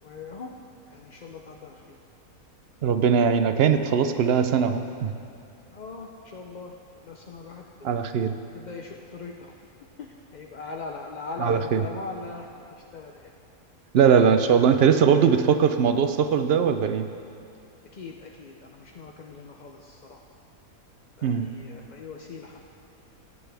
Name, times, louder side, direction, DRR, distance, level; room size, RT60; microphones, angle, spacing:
voice 1, 0.0-0.5 0.9-2.0 5.7-6.7 7.0-8.0 8.5-9.5 10.0-13.3 17.9-20.3 21.2-22.6, left 4 dB, 50° left, 0 dB, 0.5 m, -40 dB
voice 2, 2.8-5.1 7.8-8.3 11.4-11.8 13.9-17.1 21.2-21.5, right 7 dB, 65° right, 8 dB, 0.6 m, -20 dB
19.5 x 9.6 x 3.4 m, 2.5 s
omnidirectional pair, 1.6 m